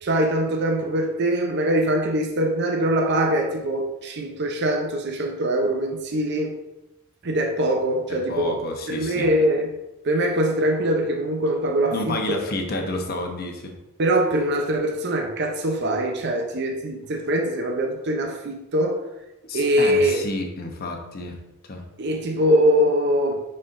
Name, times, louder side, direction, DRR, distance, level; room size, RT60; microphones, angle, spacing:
voice 1, 0.0-6.6 7.2-8.5 8.9-9.7 10.0-12.2 14.0-19.0 19.5-20.2 22.0-23.4, right 1 dB, 55° right, 3 dB, 0.7 m, -22 dB
voice 2, 8.1-9.3 11.9-13.7 19.5-21.4 21.7-21.8, left 2 dB, 50° left, 3 dB, 0.9 m, -30 dB
9.5 x 4.4 x 2.6 m, 0.96 s
head